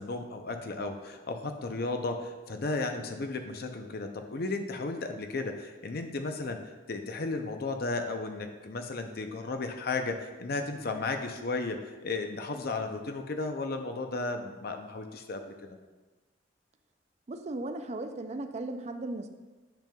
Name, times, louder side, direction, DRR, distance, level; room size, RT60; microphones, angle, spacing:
voice 1, 0.0-6.6 6.9-15.8, left 3 dB, 55° left, 6 dB, 0.6 m, -34 dB
voice 2, 17.3-19.3, right 2 dB, 35° right, 7 dB, 0.4 m, -36 dB
9.0 x 5.2 x 2.3 m, 1.2 s
head